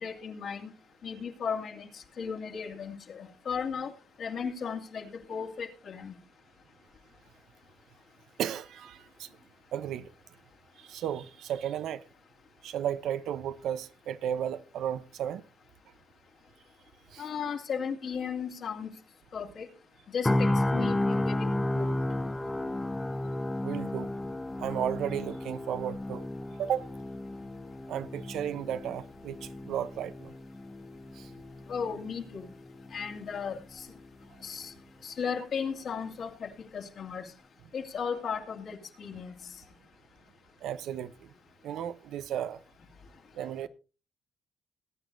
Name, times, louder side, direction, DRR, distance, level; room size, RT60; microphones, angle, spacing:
voice 1, 0.0-0.7 1.0-3.9 4.2-6.2 17.2-18.9 19.3-19.7 20.1-21.9 31.7-32.5 32.9-33.9 34.4-34.7 35.0-37.3 37.7-39.3, left 6 dB, 60° left, 2.6 m, -36 dB
voice 2, 8.4-9.3 9.7-10.1 10.8-12.0 12.6-15.4 17.1-17.5 23.6-24.1 24.6-26.3 26.6-26.9 27.9-30.3 31.2-31.3 40.6-41.3 41.6-42.6 43.3-43.7, right 10 dB, 80° right, 0.8 m, -34 dB
sound 1, 20.2-34.2 34.6-34.8, left 1 dB, 15° left, 0.7 m, -33 dB
20.5 x 10.0 x 2.7 m
cardioid pair, 90°, 0 cm